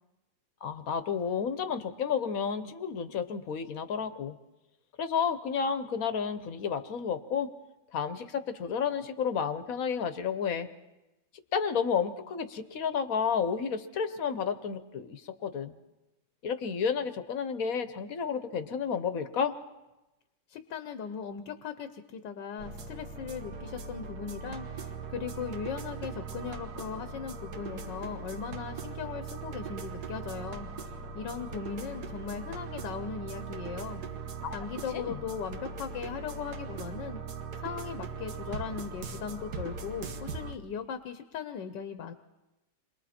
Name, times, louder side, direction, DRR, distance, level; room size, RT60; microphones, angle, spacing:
voice 1, 0.6-4.3 5.0-7.5 7.9-10.7 11.5-15.7 16.4-19.5 34.4-34.6 34.9-35.2, left 6 dB, 55° left, 11 dB, 1.3 m, -31 dB
voice 2, 20.5-34.0 34.5-37.2 37.6-42.1, left 7 dB, 85° left, 9 dB, 1.6 m, -38 dB
sound 1, 22.6-40.5, right 4 dB, 65° right, 1.6 m, -40 dB
28.0 x 22.5 x 4.3 m, 1.0 s
omnidirectional pair, 1.9 m